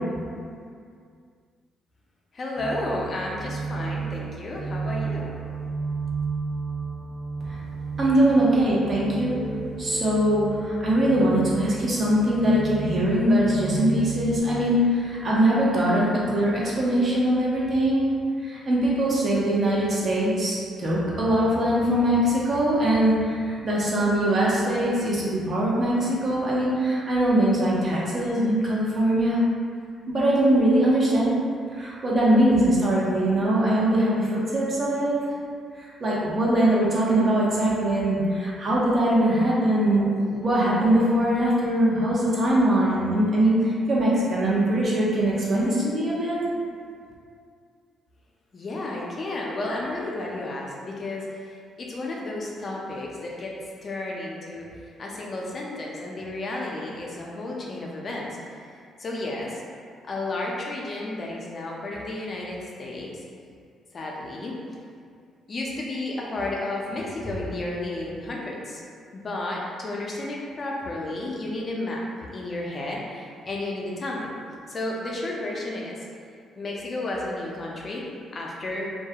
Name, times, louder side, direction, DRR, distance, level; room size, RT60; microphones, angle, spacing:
voice 1, 2.3-5.3 48.5-53.6 53.8-58.3 59.0-59.6 60.0-63.2 63.9-64.5 65.5-68.8 69.1-72.0 72.3-74.3 74.7-76.0 76.6-78.0 78.3-78.9, left 2 dB, 40° left, -3 dB, 0.4 m, -32 dB
sound 1, 2.6-14.4, right 4 dB, 5° right, 0.7 m, -33 dB
voice 2, 8.0-9.4 9.8-18.1 18.4-29.4 30.1-31.3 31.7-35.2 35.8-46.4, right 1 dB, 40° right, -6 dB, 0.6 m, -22 dB
2.2 x 2.0 x 2.7 m, 2.2 s
cardioid pair, 90°, 0 cm